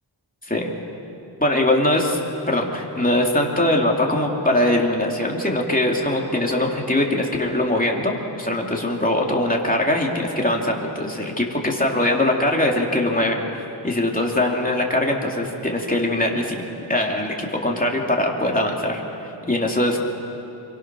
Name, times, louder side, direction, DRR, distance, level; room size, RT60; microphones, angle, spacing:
voice 1, 1.4-2.2 2.5-13.4 13.8-19.0 19.4-20.0, left 1 dB, 15° left, -1 dB, 2.9 m, -22 dB
26.5 x 23.5 x 6.2 m, 2.9 s
wide cardioid pair, 70°, 48 cm